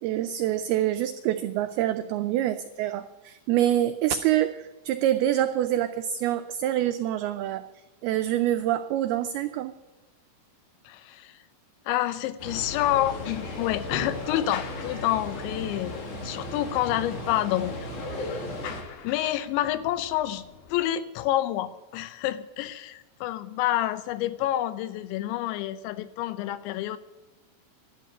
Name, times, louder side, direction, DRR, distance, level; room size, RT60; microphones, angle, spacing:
voice 1, 0.0-7.6 8.0-9.7, right 12 dB, 90° right, 9 dB, 2.2 m, -26 dB
voice 2, 10.9-11.3 11.9-17.9 18.1-18.4 19.0-27.0, left 13 dB, 85° left, 13 dB, 3.1 m, -28 dB
sound 1, 12.4-18.8, left 1 dB, 50° left, 3.7 m, -36 dB
sound 2, 12.6-20.9, left 6 dB, 70° left, 3.1 m, -43 dB
12.0 x 11.5 x 9.6 m, 1.1 s
omnidirectional pair, 5.2 m